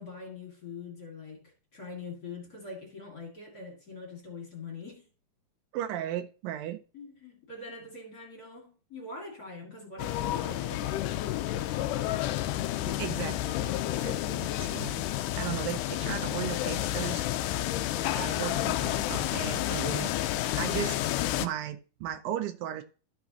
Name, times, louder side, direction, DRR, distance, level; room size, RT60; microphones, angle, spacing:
voice 1, 0.0-5.1 6.9-11.0, left 4 dB, 35° left, 2.0 m, -43 dB
voice 2, 5.7-6.8 12.9-17.3 18.2-20.1 20.6-21.0 21.4-22.8, right 11 dB, 90° right, 2.5 m, -36 dB
sound 1, 10.0-21.5, left 14 dB, 80° left, 2.0 m, -30 dB
13.0 x 6.0 x 2.9 m
omnidirectional pair, 3.9 m